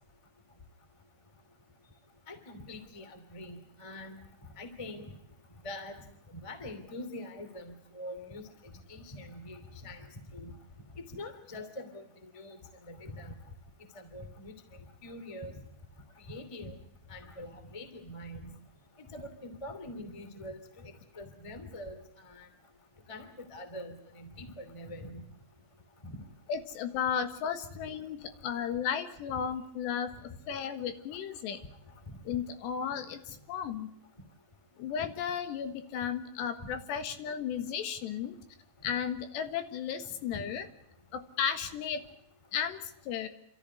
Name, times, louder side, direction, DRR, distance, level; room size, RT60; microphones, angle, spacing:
voice 1, 2.3-4.2 4.6-5.1 5.6-6.0 6.4-8.4 8.9-10.0 10.3-10.5 11.1-12.6 12.9-13.3 13.9-14.5 15.0-15.5 16.3-16.7 17.1-18.5 19.1-22.0 22.3-22.5 23.1-25.2 26.0-26.2 40.3-40.4, left 1 dB, 10° left, 9 dB, 1.6 m, -44 dB
voice 2, 26.5-31.6 32.3-33.9 34.8-38.4 38.8-40.7 41.1-42.0 42.5-43.3, left 8 dB, 70° left, 9 dB, 3.6 m, -34 dB
28.5 x 13.5 x 9.6 m, 0.72 s
omnidirectional pair, 5.3 m